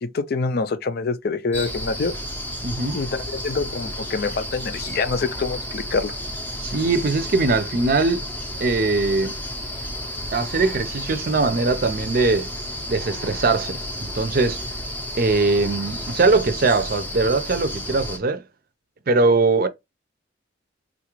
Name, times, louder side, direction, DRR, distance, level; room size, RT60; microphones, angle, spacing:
voice 1, 0.0-2.1 2.9-6.1, left 4 dB, 55° left, 0.4 m, -26 dB
sound 1, 1.5-18.2, equal, 10° left, 0.6 m, -32 dB
voice 2, 2.6-3.0 6.6-8.3 8.6-9.4 10.3-12.5 12.9-14.6 15.1-18.4 19.1-19.7, right 3 dB, 50° right, 0.5 m, -21 dB
3.9 x 2.4 x 3.0 m
head